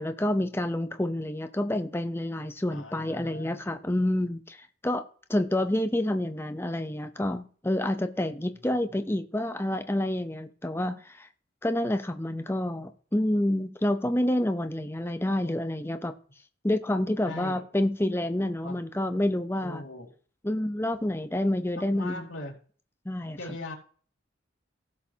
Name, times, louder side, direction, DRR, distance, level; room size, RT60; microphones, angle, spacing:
voice 1, 0.0-5.0 5.3-11.3 11.6-16.1 16.6-19.8 20.4-22.3 23.1-23.4, left 1 dB, 10° left, 8 dB, 0.7 m, -28 dB
voice 2, 2.7-3.7 17.2-17.6 18.6-18.9 19.6-20.1 21.7-22.5 23.4-23.7, left 2 dB, 85° left, 0 dB, 2.8 m, -40 dB
16.5 x 6.5 x 2.8 m, 0.44 s
head